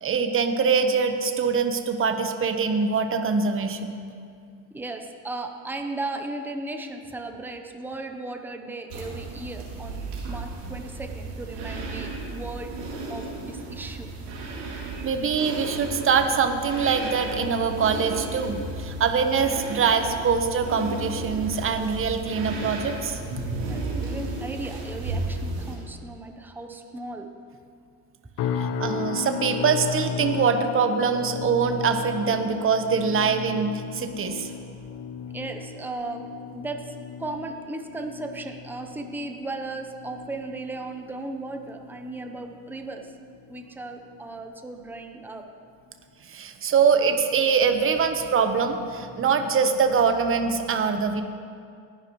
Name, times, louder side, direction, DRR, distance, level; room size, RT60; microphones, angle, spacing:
voice 1, 0.0-4.0 15.0-23.2 28.5-34.5 46.2-51.2, right 5 dB, 30° right, 7 dB, 1.1 m, -23 dB
voice 2, 4.7-12.7 13.1-14.1 23.6-27.3 35.3-36.2 36.5-43.1 43.5-45.5, right 2 dB, 5° right, 5 dB, 0.8 m, -36 dB
sound 1, 8.9-25.7, right 2 dB, 80° right, 3.6 m, -34 dB
sound 2, 28.4-43.6 43.9-44.3 44.8-45.0, left 6 dB, 60° left, 0.9 m, -35 dB
19.0 x 10.5 x 3.1 m, 2.3 s
supercardioid pair, 110°, 45 cm